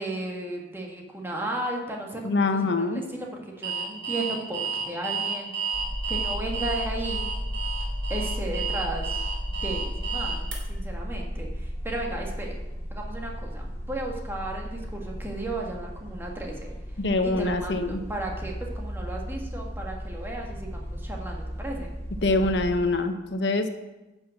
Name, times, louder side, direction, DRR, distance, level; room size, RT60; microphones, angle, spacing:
voice 1, 0.0-5.5 6.1-7.3 8.1-12.6 12.9-16.7 17.2-21.9, right 1 dB, 15° right, 0 dB, 1.8 m, -35 dB
voice 2, 2.2-3.0 17.0-18.0 22.2-23.7, left 2 dB, 70° left, 7 dB, 0.9 m, -24 dB
Alarm, 3.6-10.6, right 5 dB, 90° right, 2.8 m, -31 dB
sound 1, 5.7-22.8, equal, 15° left, 2.8 m, -34 dB
10.5 x 6.3 x 7.7 m, 1.0 s
head